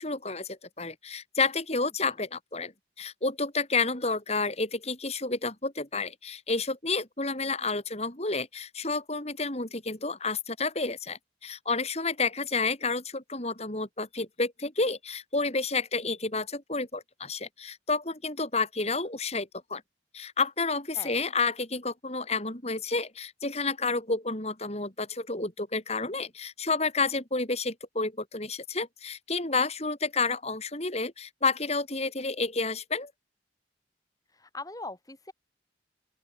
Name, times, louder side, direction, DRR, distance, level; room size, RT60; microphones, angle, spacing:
voice 1, 0.0-2.7 3.0-19.8 20.1-33.1, left 3 dB, 35° left, 5.3 m, -30 dB
voice 2, 34.3-35.3, left 2 dB, 20° left, 3.8 m, -41 dB
open air
head